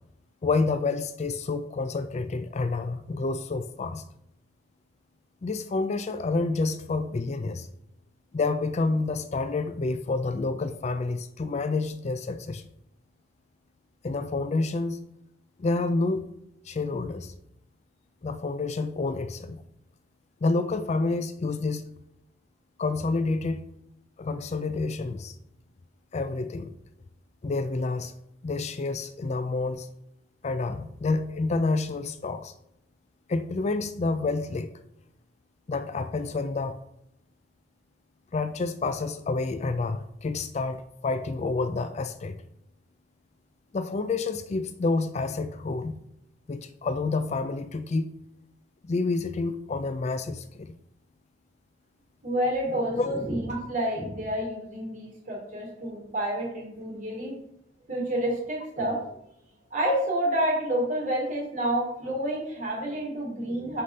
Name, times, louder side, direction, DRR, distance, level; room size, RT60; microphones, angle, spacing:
voice 1, 0.4-4.0 5.4-7.7 8.3-12.6 14.0-15.0 15.6-16.2 16.7-17.3 18.2-19.6 20.4-21.8 22.8-23.6 24.2-25.3 26.1-26.7 27.4-28.1 28.4-29.9 30.4-32.5 33.3-34.7 35.7-36.8 38.3-42.4 43.7-46.0 46.5-48.0 48.8-50.7 52.9-53.1, left 3 dB, 35° left, 0.4 m, -28 dB
voice 2, 52.2-57.4 57.9-59.0 59.7-63.8, right 1 dB, 45° right, 3.0 m, -29 dB
5.7 x 5.0 x 5.3 m
head